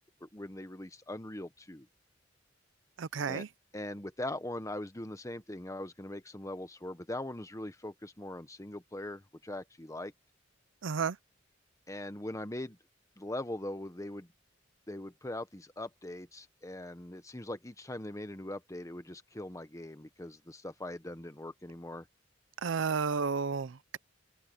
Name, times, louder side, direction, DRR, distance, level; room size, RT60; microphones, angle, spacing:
voice 1, 0.2-1.9 3.3-3.4 3.7-10.1 11.9-12.8 13.2-14.3 14.9-22.1, left 1 dB, 15° left, 1.2 m, -41 dB
voice 2, 3.0-3.5 10.8-11.2 22.6-24.0, right 5 dB, 80° right, 0.5 m, -32 dB
head